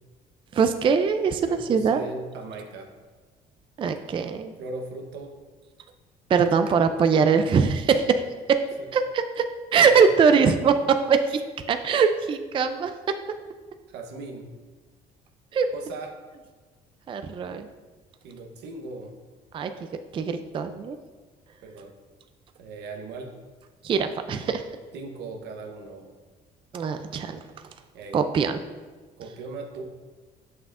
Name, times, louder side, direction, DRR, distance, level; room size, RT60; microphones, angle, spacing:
voice 1, 0.5-2.0 3.8-4.5 6.3-8.2 8.5-8.6 8.9-9.4 9.7-11.4 11.7-12.9 15.5-15.7 17.1-17.7 19.5-19.7 20.1-21.0 23.8-24.6 26.7-27.4 28.1-28.6, right 6 dB, 30° right, 8 dB, 0.3 m, -22 dB
voice 2, 1.4-2.9 4.6-5.3 8.8-8.9 9.8-10.5 13.9-14.5 15.7-16.2 18.2-19.2 21.6-21.9 22.6-23.3 24.9-26.2 27.9-28.2 29.2-29.9, right 3 dB, 80° right, 4 dB, 0.9 m, -38 dB
7.5 x 6.1 x 2.4 m, 1.4 s
cardioid pair, 110°, 17 cm